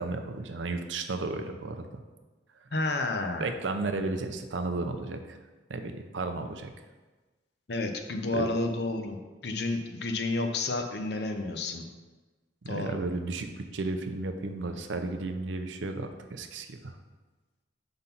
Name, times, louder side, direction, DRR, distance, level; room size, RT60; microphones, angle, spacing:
voice 1, 0.0-2.0 3.4-5.4 5.7-6.7 8.3-8.4 12.6-16.9, right 3 dB, 80° right, 7 dB, 0.6 m, -33 dB
voice 2, 2.7-3.5 7.7-11.9 12.7-13.0, left 2 dB, 60° left, 5 dB, 0.6 m, -31 dB
5.3 x 4.0 x 5.8 m, 1.2 s
head